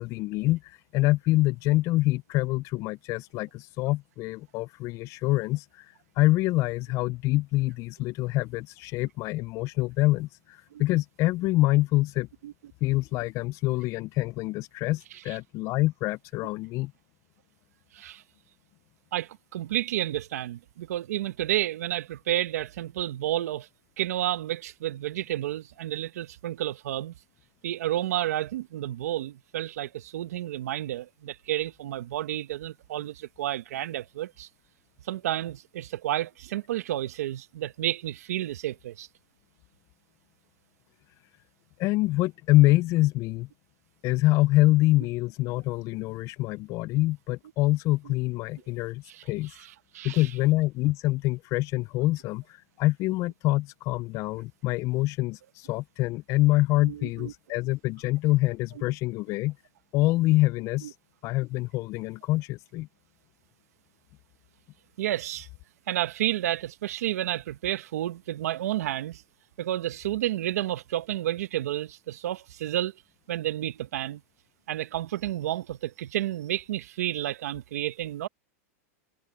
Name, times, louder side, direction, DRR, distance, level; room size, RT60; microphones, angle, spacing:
voice 1, 0.0-5.8 6.2-12.3 12.8-16.9 41.8-43.5 44.0-49.5 50.0-52.4 52.8-59.6 59.9-60.9 61.2-62.9, left 18 dB, 40° left, 0.4 m, -25 dB
voice 2, 19.1-23.7 24.0-27.1 27.6-34.5 35.0-39.1 48.0-48.1 49.1-49.2 49.5-50.3 56.8-57.3 60.8-60.9 65.0-65.5 65.9-69.2 69.6-73.0 73.3-74.2 74.7-78.3, right 13 dB, 85° right, 1.1 m, -31 dB
supercardioid pair, 140°, 8 cm